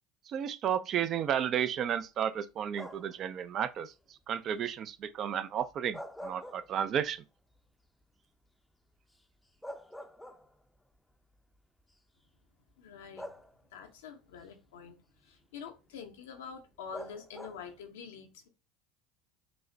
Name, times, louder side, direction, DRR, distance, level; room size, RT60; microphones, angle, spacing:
voice 1, 0.3-3.9 4.3-7.2, right 9 dB, 45° right, 0.4 m, -32 dB
sound 1, 2.7-3.2 5.7-7.1 7.5-7.6 9.1-9.2 9.6-10.8 11.8-11.9 13.2-13.9 16.9-17.8, equal, 5° left, 0.6 m, -45 dB
voice 2, 12.8-13.3 13.7-18.5, left 6 dB, 85° left, 0.8 m, -46 dB
6.1 x 2.1 x 2.7 m
supercardioid pair, 95°, 0 cm